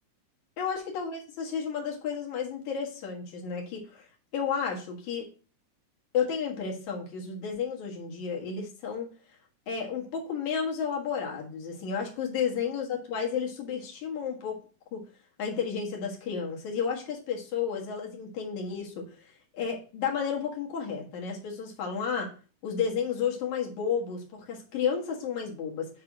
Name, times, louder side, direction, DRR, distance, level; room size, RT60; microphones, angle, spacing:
voice 1, 0.6-4.1 4.3-5.3 6.1-9.1 9.7-14.6 14.9-15.0 15.4-22.3 22.6-25.9, left 6 dB, 70° left, -1 dB, 2.8 m, -32 dB
6.7 x 3.3 x 5.9 m, 0.38 s
omnidirectional pair, 3.5 m